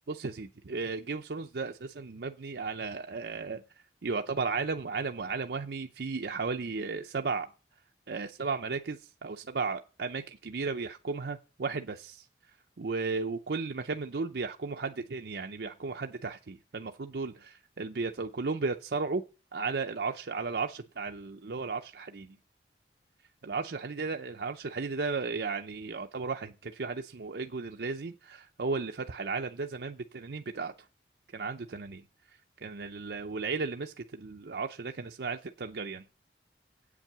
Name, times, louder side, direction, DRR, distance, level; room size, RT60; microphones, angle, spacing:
voice 1, 0.1-3.6 4.0-7.5 8.1-12.2 12.8-19.2 19.5-22.4 23.4-30.7 31.3-32.0 32.6-36.0, right 4 dB, 65° right, 0.6 m, -35 dB
8.5 x 7.4 x 6.7 m
head